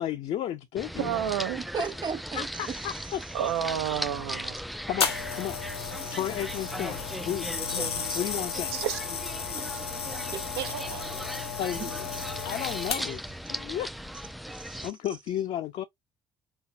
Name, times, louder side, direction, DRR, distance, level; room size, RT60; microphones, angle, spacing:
voice 1, 0.0-1.1 1.8-1.9 2.4-3.2 4.9-5.6 6.1-8.8 11.4-13.2 13.5-13.9 14.8-15.8, left 11 dB, 55° left, 0.5 m, -33 dB
sound 1, 0.8-14.9, equal, ahead, 0.3 m, -38 dB
voice 2, 1.0-1.6 3.3-4.6 8.7-9.0 10.6-11.1, right 10 dB, 80° right, 0.7 m, -30 dB
voice 3, 1.7-3.1 6.0-6.2 8.1-8.2 9.6-9.8 10.1-10.5 11.2-12.3 14.5-14.9, right 6 dB, 35° right, 1.0 m, -38 dB
sound 2, 5.0-13.3 14.1-14.3, left 6 dB, 90° left, 0.7 m, -34 dB
4.2 x 3.5 x 2.7 m
figure-of-eight pair, 50°, 13 cm